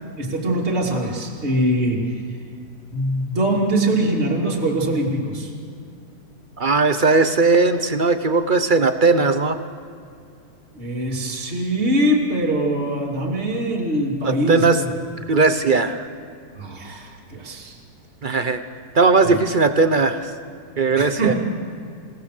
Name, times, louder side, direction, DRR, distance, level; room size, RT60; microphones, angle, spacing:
voice 1, 0.2-2.2 2.9-5.5 10.7-14.9 16.5-17.8 19.2-19.4 20.9-21.4, right 1 dB, 35° right, -2 dB, 3.1 m, -23 dB
voice 2, 6.6-9.6 14.2-14.8 15.3-16.1 18.2-18.6 18.9-20.3 20.8-21.3, right 3 dB, 50° right, 9 dB, 0.5 m, -18 dB
28.5 x 18.5 x 6.6 m, 2.4 s
omnidirectional pair, 2.1 m